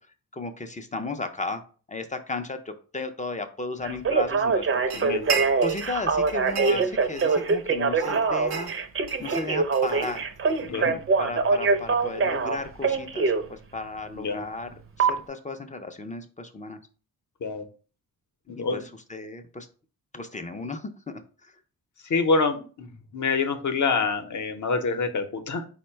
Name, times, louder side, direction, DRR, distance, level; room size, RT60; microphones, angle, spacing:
voice 1, 0.3-1.6 1.9-4.7 4.9-8.7 9.2-10.2 10.7-14.7 15.0-16.8 18.5-18.8 19.1-19.7 20.1-21.5, left 3 dB, 20° left, 7 dB, 0.4 m, -35 dB
Telephone, 3.8-13.4 15.0-15.1, right 4 dB, 35° right, 0.5 m, -23 dB
voice 2, 4.9-5.4 6.7-6.8 10.6-10.9 14.1-14.5 17.4-17.7 18.5-18.8 22.0-25.6, left 4 dB, 50° left, 7 dB, 0.7 m, -27 dB
sound 1, 4.9-6.0 6.3-7.6 7.9-10.6, right 6 dB, 90° right, 0.8 m, -33 dB
4.4 x 2.2 x 4.3 m, 0.38 s
wide cardioid pair, 105°, 37 cm